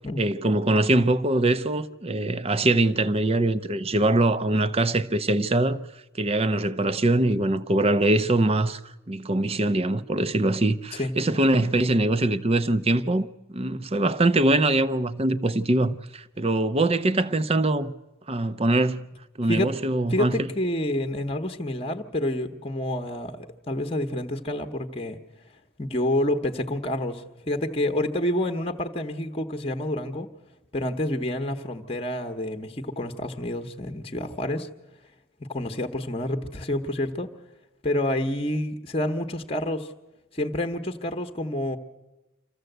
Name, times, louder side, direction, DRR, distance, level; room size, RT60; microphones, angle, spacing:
voice 1, 0.2-5.8 6.2-17.9 18.3-20.5, right 2 dB, 30° right, 0.6 m, -23 dB
voice 2, 20.1-23.4 23.7-25.2 25.8-30.3 30.7-34.7 35.4-37.3 37.8-39.9 40.3-41.8, left 1 dB, 25° left, 1.0 m, -28 dB
26.0 x 14.5 x 7.9 m
head